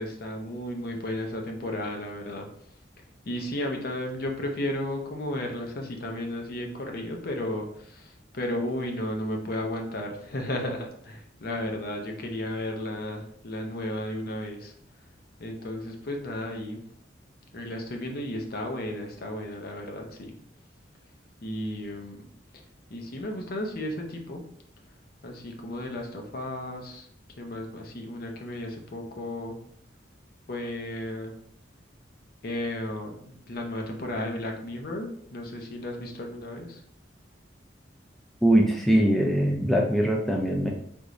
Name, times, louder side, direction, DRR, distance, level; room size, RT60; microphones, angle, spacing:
voice 1, 0.0-2.5 3.3-14.7 15.4-16.8 17.5-20.3 21.4-22.2 22.9-24.4 25.2-27.1 27.4-29.6 30.5-31.3 32.4-36.8, left 1 dB, 50° left, 2 dB, 0.6 m, -34 dB
voice 2, 38.4-40.7, right 1 dB, ahead, -1 dB, 0.4 m, -22 dB
3.5 x 3.0 x 2.6 m, 0.66 s
head